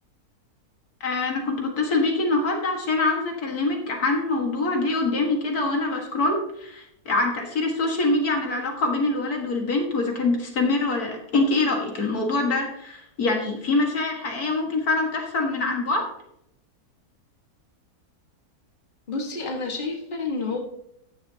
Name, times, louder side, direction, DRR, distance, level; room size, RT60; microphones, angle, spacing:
voice 1, 1.0-16.0, left 3 dB, 75° left, 1 dB, 2.2 m, -24 dB
voice 2, 19.1-20.6, left 3 dB, 35° left, 1 dB, 1.7 m, -29 dB
13.5 x 10.0 x 2.8 m, 0.78 s
omnidirectional pair, 1.6 m